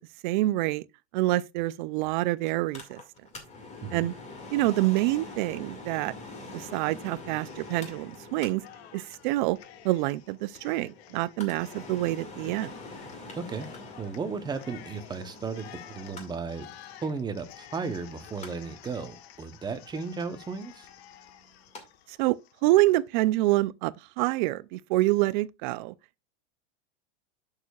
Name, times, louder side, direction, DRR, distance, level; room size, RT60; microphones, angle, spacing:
voice 1, 0.2-0.8 1.1-3.0 3.9-4.1 4.5-6.1 6.5-8.6 8.9-9.6 9.8-12.7 22.2-22.4 22.6-25.9, right 18 dB, 45° right, 0.4 m, -26 dB
Mechanical fan, 2.4-21.8 22.2-22.3, left 3 dB, 20° left, 2.1 m, -46 dB
Cheering, 7.4-8.3 8.6-23.0, left 12 dB, 60° left, 1.1 m, -52 dB
voice 2, 13.4-13.7 14.0-16.7 17.0-20.9, right 5 dB, 10° right, 0.8 m, -35 dB
11.0 x 6.6 x 2.3 m
supercardioid pair, 145°, 35 cm